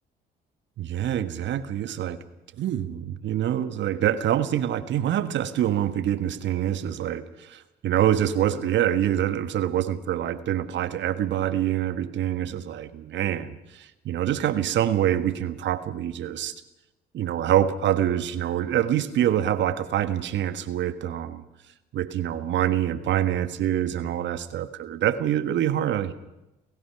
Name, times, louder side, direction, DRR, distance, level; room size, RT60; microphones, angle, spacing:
voice 1, 0.8-2.2 2.6-16.5 17.1-21.4 21.9-26.1, right 11 dB, 60° right, 11 dB, 1.5 m, -25 dB
29.5 x 15.5 x 5.9 m, 0.94 s
hypercardioid pair, 55°, 21 cm